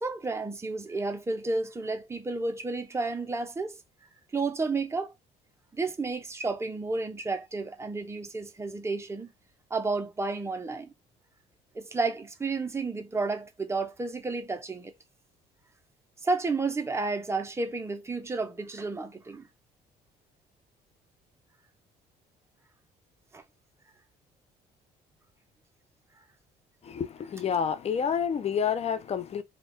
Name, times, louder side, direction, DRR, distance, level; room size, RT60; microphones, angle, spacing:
voice 1, 0.0-3.8 4.3-5.1 5.7-9.3 9.7-10.9 11.7-14.9 16.2-19.5 23.3-23.4, right 3 dB, 15° right, 0.8 m, -31 dB
voice 2, 26.8-29.4, left 7 dB, 40° left, 0.7 m, -29 dB
4.4 x 2.4 x 3.5 m
cardioid pair, 110°, 17 cm